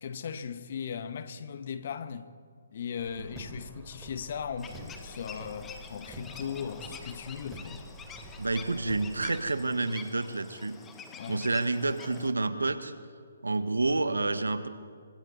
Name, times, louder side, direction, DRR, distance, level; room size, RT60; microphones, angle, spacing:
voice 1, 0.0-2.3 2.7-7.8 11.1-11.5, left 7 dB, 50° left, 1.4 m, -38 dB
Car, 3.0-9.3, right 1 dB, 15° right, 4.2 m, -47 dB
sound 1, 4.6-12.3, left 5 dB, 15° left, 1.7 m, -47 dB
voice 2, 8.4-10.8 11.3-12.9 13.4-14.7, right 3 dB, 90° right, 1.6 m, -29 dB
26.0 x 25.0 x 4.2 m
figure-of-eight pair, 145°, 0 cm